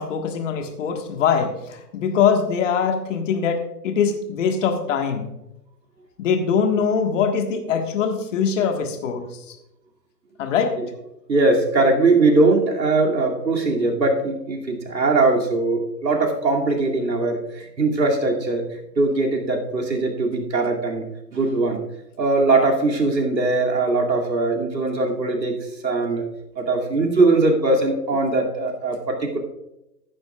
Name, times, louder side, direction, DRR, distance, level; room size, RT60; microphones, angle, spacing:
voice 1, 0.0-5.3 6.2-9.6 10.4-10.7, left 6 dB, 45° left, 5 dB, 1.7 m, -22 dB
voice 2, 11.3-21.1 21.3-21.8 22.2-26.3 26.6-29.4, right 3 dB, 90° right, 0 dB, 2.7 m, -21 dB
14.5 x 10.5 x 2.4 m, 0.88 s
hypercardioid pair, 135°, 50 cm